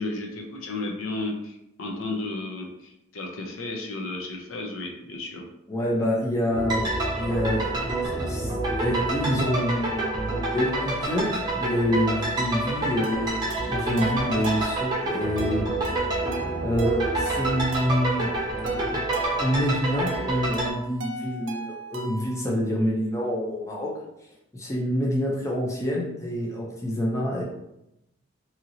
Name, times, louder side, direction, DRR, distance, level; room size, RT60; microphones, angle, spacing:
voice 1, 0.0-5.5, left 2 dB, 75° left, 2 dB, 0.5 m, -33 dB
voice 2, 5.7-6.9 7.2-15.7 16.6-18.3 18.9-19.0 19.4-23.9 24.5-27.4, equal, 15° left, -3 dB, 0.5 m, -27 dB
sound 1, 6.5-20.7, right 2 dB, 20° right, 0.7 m, -28 dB
sound 2, 13.0-22.4, right 3 dB, 60° right, 0.5 m, -37 dB
2.8 x 2.8 x 2.7 m, 0.86 s
head